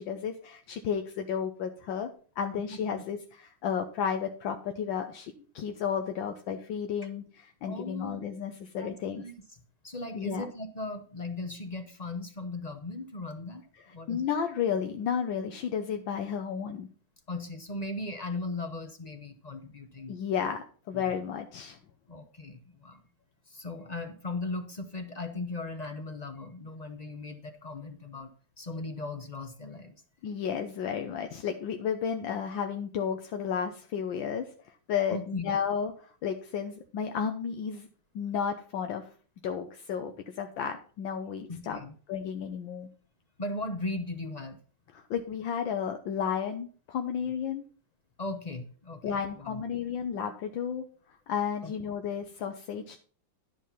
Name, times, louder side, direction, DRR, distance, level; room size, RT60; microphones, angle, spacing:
voice 1, 0.0-2.1 2.4-9.2 10.1-10.4 14.1-16.9 20.1-21.8 30.2-37.9 38.1-39.1 39.4-41.8 42.1-42.9 44.9-47.6 49.0-50.8 51.3-53.0, left 7 dB, 80° left, 5 dB, 1.6 m, -32 dB
voice 2, 2.7-3.0 7.7-8.2 8.8-9.3 9.8-14.3 17.3-20.1 20.9-21.1 22.1-23.0 23.5-28.3 28.6-30.0 35.1-35.5 41.5-41.9 43.4-44.6 48.2-49.6 51.6-51.7, left 2 dB, 35° left, 7 dB, 0.6 m, -38 dB
11.0 x 5.3 x 5.8 m, 0.41 s
omnidirectional pair, 2.1 m